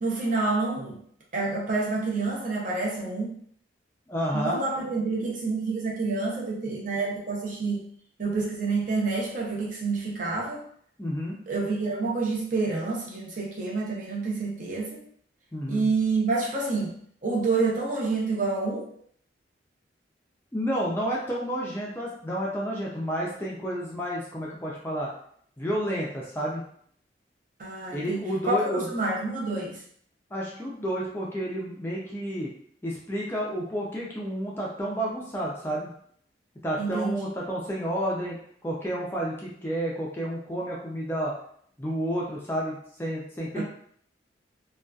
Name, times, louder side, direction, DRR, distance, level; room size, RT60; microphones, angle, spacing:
voice 1, 0.0-1.0 1.3-3.3 4.3-7.8 8.2-10.6 11.5-15.0 15.7-16.9 17.2-18.9 27.6-29.8 36.8-37.3 43.5-43.6, right 3 dB, 45° right, -3 dB, 0.6 m, -28 dB
voice 2, 4.1-4.6 11.0-11.4 15.5-15.9 20.5-25.1 25.6-26.7 27.9-28.9 30.3-32.5 32.8-35.9 36.6-41.3 41.8-43.6, equal, 10° left, -4 dB, 0.3 m, -30 dB
2.5 x 2.2 x 2.3 m, 0.63 s
head